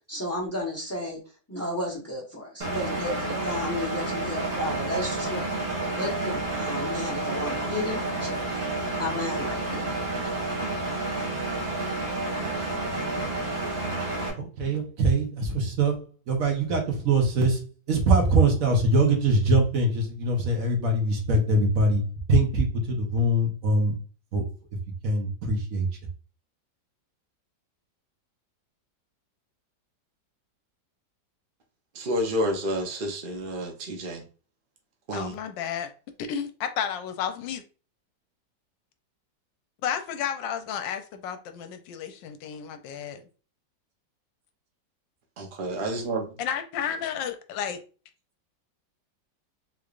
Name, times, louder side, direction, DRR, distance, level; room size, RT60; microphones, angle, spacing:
voice 1, 0.1-1.2 1.5-5.4 5.9-8.4 9.0-10.0, left 1 dB, 20° left, 0.4 m, -33 dB
Engine, 2.6-14.3, right 2 dB, 25° right, 1.1 m, -30 dB
voice 2, 14.3-24.0 24.3-24.5 25.0-25.9, right 2 dB, 55° right, 1.1 m, -23 dB
voice 3, 31.9-34.2 35.1-35.3 45.4-46.2, equal, 75° right, 0.4 m, -29 dB
voice 4, 35.1-35.9 36.3-37.6 39.8-43.2 46.4-47.8, left 8 dB, 80° left, 1.3 m, -32 dB
3.6 x 3.3 x 2.4 m
omnidirectional pair, 2.0 m